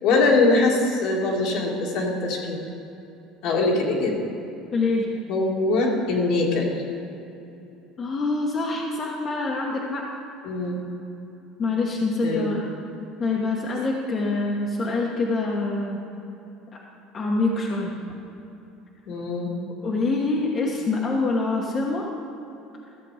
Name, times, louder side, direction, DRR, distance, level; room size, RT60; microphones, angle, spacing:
voice 1, 0.0-2.6 3.4-4.2 5.3-6.8 10.4-10.8 12.2-12.5 19.1-19.5, left 3 dB, 70° left, -1 dB, 2.1 m, -22 dB
voice 2, 4.7-5.1 8.0-10.0 11.6-12.7 13.2-16.0 17.1-17.9 19.8-22.1, left 3 dB, 35° left, -2 dB, 1.1 m, -25 dB
14.0 x 6.9 x 4.9 m, 2.9 s
cardioid pair, 130°, 0 cm